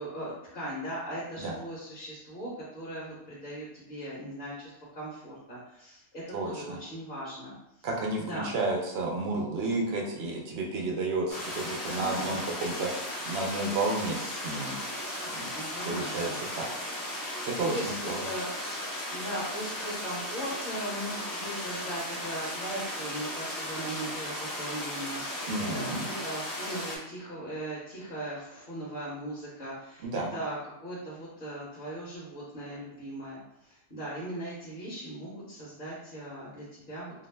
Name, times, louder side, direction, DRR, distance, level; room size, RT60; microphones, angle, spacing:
voice 1, 0.0-7.9 8.2-8.5 11.6-12.4 15.5-16.7 17.6-18.5 18.9-37.1, right 1 dB, 50° left, -8 dB, 1.0 m, -39 dB
voice 2, 6.3-6.8 7.8-14.8 15.3-15.5 15.9-16.7 17.5-18.3 25.5-26.0 30.0-30.3, right 2 dB, 65° right, 0 dB, 0.8 m, -32 dB
sound 1, 11.3-27.0, left 1 dB, 35° left, 0.3 m, -36 dB
2.6 x 2.0 x 3.2 m, 0.82 s
omnidirectional pair, 1.2 m